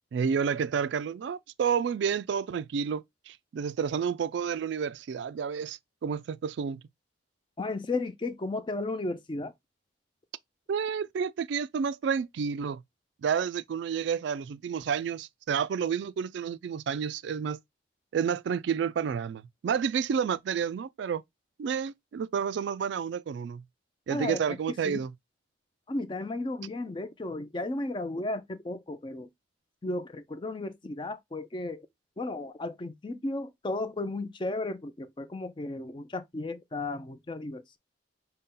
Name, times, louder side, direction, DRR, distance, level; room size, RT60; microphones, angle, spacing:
voice 1, 0.1-6.8 10.7-12.8 13.2-17.6 18.1-21.2 21.6-23.6 24.1-25.1, right 7 dB, 65° right, 0.3 m, -30 dB
voice 2, 7.6-9.5 24.1-24.4 24.8-25.0 25.9-29.3 29.8-31.9 32.2-37.8, left 2 dB, 25° left, 0.4 m, -34 dB
5.4 x 2.2 x 3.7 m
head